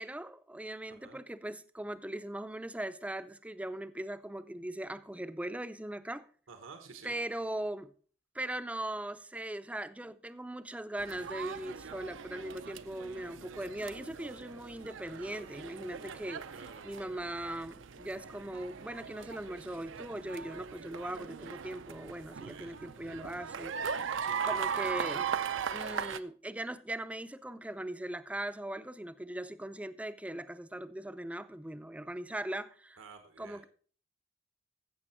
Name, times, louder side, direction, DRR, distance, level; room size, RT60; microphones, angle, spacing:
voice 1, 0.0-6.3 7.0-7.9 8.3-16.4 16.8-24.1 24.4-25.3 25.7-33.0 33.4-33.7, right 1 dB, 5° right, 0.5 m, -40 dB
voice 2, 0.9-1.2 6.5-7.2 16.5-16.9 22.4-23.2 24.2-24.5 33.0-33.6, right 4 dB, 80° right, 1.3 m, -51 dB
sound 1, 11.0-26.2, right 7 dB, 65° right, 0.5 m, -39 dB
15.0 x 7.0 x 4.4 m
head